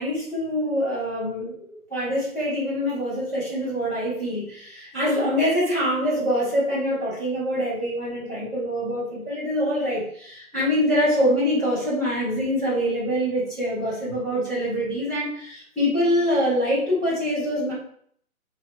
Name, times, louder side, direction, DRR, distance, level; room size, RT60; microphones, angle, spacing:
voice 1, 0.0-17.7, equal, ahead, -15 dB, 1.2 m, -25 dB
3.8 x 2.9 x 2.2 m, 0.62 s
hypercardioid pair, 160°, 44 cm